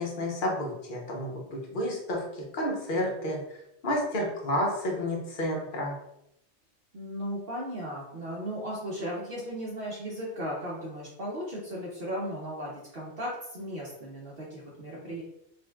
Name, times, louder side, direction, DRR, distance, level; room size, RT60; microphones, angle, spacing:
voice 1, 0.0-3.4 3.8-6.0, left 1 dB, 50° left, -1 dB, 1.0 m, -30 dB
voice 2, 6.9-15.2, equal, 55° right, -5 dB, 0.9 m, -36 dB
5.1 x 2.6 x 2.3 m, 0.80 s
omnidirectional pair, 1.2 m